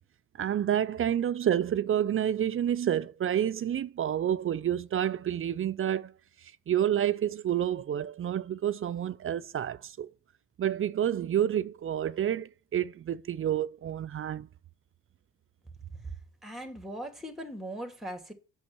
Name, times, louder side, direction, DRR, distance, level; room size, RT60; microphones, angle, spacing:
voice 1, 0.4-6.1 6.7-10.1 10.6-14.5, right 10 dB, 45° right, 0.5 m, -29 dB
voice 2, 15.9-18.3, right 1 dB, ahead, 2.3 m, -40 dB
8.4 x 6.3 x 6.1 m
cardioid pair, 90°, 30 cm